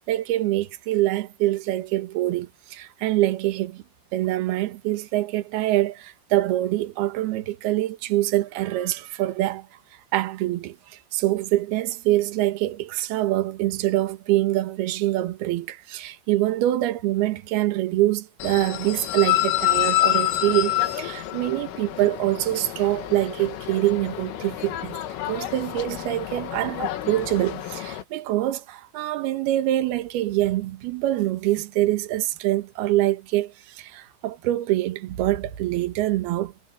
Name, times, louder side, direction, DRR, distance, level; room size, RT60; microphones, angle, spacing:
voice 1, 0.0-3.8 4.1-9.7 10.1-10.8 11.1-25.0 25.2-36.5, right 15 dB, 65° right, 2.8 m, -25 dB
sound 1, 18.4-28.0, left 15 dB, 80° left, 4.2 m, -28 dB
omnidirectional pair, 5.8 m